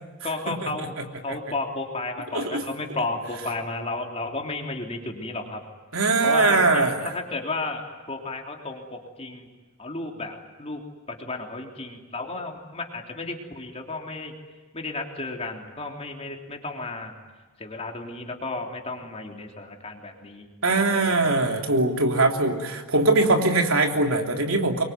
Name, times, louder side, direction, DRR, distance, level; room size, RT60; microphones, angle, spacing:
voice 1, 0.2-1.0 1.2-5.6 6.2-7.8 8.1-9.5 9.8-10.8 11.1-14.3 14.7-17.1 17.6-21.3, left 2 dB, 30° left, 1 dB, 3.4 m, -33 dB
voice 2, 5.9-7.1 20.6-24.8, right 3 dB, 75° right, 2 dB, 3.3 m, -21 dB
26.0 x 23.0 x 9.4 m, 1.3 s
head